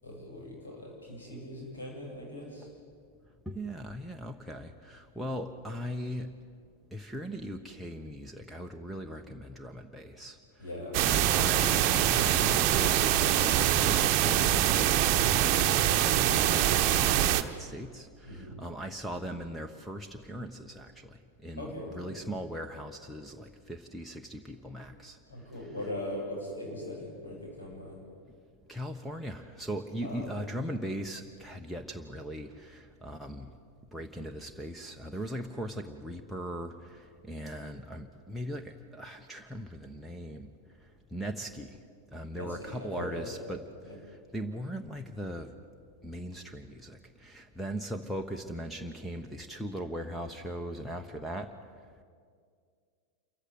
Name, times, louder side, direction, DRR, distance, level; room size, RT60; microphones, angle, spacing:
voice 1, 0.0-2.7 10.6-11.4 18.2-18.6 21.6-22.1 25.3-28.0 30.0-30.5 42.3-43.5 43.8-44.0, left 1 dB, 75° left, -1 dB, 7.8 m, -40 dB
voice 2, 3.5-6.3 6.9-10.4 11.0-25.2 28.7-33.5 33.9-40.5 41.1-41.8 42.1-43.6 44.1-45.5 46.0-51.5, equal, ahead, 6 dB, 1.1 m, -39 dB
sound 1, 10.9-17.4, right 11 dB, 40° right, 1.1 m, -24 dB
27.5 x 15.0 x 9.5 m, 2.1 s
figure-of-eight pair, 90°, 0 cm